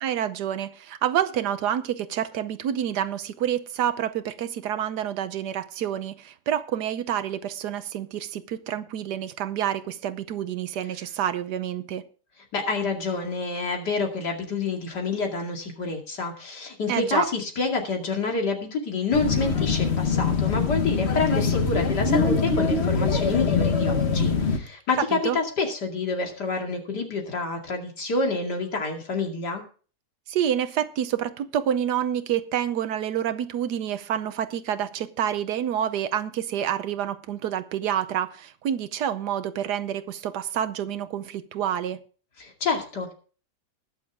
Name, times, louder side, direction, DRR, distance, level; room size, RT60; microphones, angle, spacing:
voice 1, 0.0-12.0 16.9-17.3 25.0-25.4 30.3-42.0, right 10 dB, 75° right, 1.4 m, -28 dB
voice 2, 12.5-29.6 42.4-43.1, left 4 dB, 75° left, 3.0 m, -28 dB
sound 1, 19.1-24.6, left 4 dB, 40° left, 1.4 m, -23 dB
20.0 x 7.0 x 3.6 m
omnidirectional pair, 1.8 m